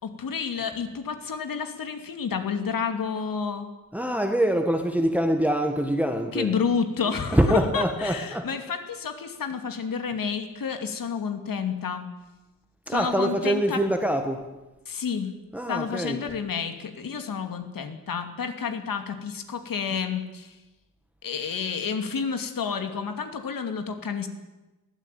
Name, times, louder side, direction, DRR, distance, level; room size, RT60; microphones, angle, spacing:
voice 1, 0.0-3.7 6.3-12.1 12.9-13.8 14.9-15.3 15.7-20.5 21.2-24.3, left 6 dB, 70° left, 7 dB, 2.7 m, -30 dB
voice 2, 3.9-6.5 7.0-8.5 12.9-14.4 15.5-16.3, right 1 dB, 5° right, 5 dB, 1.6 m, -25 dB
22.5 x 16.5 x 9.2 m, 1.1 s
wide cardioid pair, 180°, 35 cm